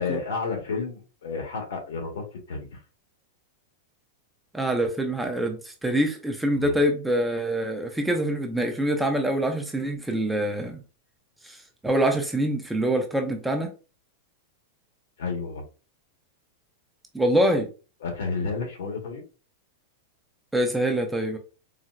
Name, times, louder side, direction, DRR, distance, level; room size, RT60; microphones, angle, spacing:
voice 1, 0.0-2.8 6.5-6.7 15.2-15.6 18.0-19.2, left 4 dB, 80° left, 1.4 m, -31 dB
voice 2, 4.5-10.8 11.4-13.7 17.1-17.7 20.5-21.4, right 1 dB, 5° right, 0.5 m, -25 dB
4.0 x 2.1 x 2.4 m
supercardioid pair, 155°, 0 cm